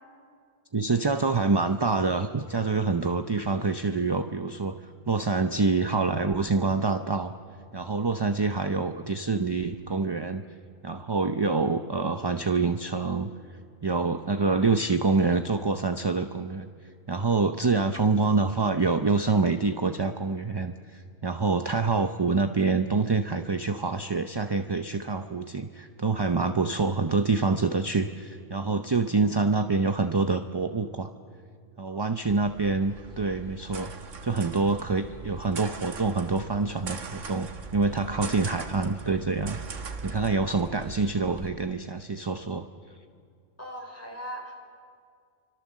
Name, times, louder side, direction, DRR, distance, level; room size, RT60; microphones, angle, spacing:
voice 1, 0.7-7.3 7.7-10.4 10.8-13.3 13.8-16.7 17.1-31.1 31.8-33.9 34.2-39.6 40.0-42.7, right 4 dB, 25° right, 8 dB, 0.5 m, -26 dB
sound 1, 32.2-41.5, right 4 dB, 80° right, 1.7 m, -41 dB
voice 2, 43.6-44.5, right 1 dB, 10° left, 0 dB, 4.9 m, -39 dB
29.5 x 25.5 x 7.4 m, 2.2 s
omnidirectional pair, 1.3 m